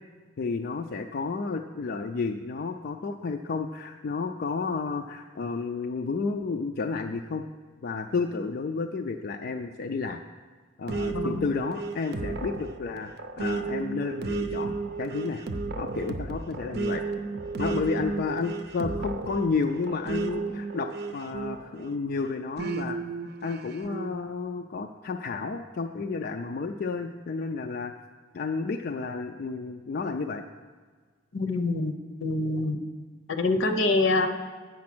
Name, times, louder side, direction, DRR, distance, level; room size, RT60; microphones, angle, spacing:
voice 1, 0.4-7.4 7.8-10.2 10.8-15.5 15.8-17.0 17.6-23.0 23.4-27.9 28.3-30.4, left 4 dB, 50° left, 4 dB, 0.4 m, -31 dB
sound 1, 10.9-22.0 22.6-24.1, right 3 dB, 55° right, 0.6 m, -33 dB
voice 2, 11.1-11.5 31.3-31.9 32.2-32.8 33.3-34.3, left 2 dB, 75° left, 7 dB, 0.8 m, -25 dB
8.5 x 6.4 x 6.1 m, 1.6 s
head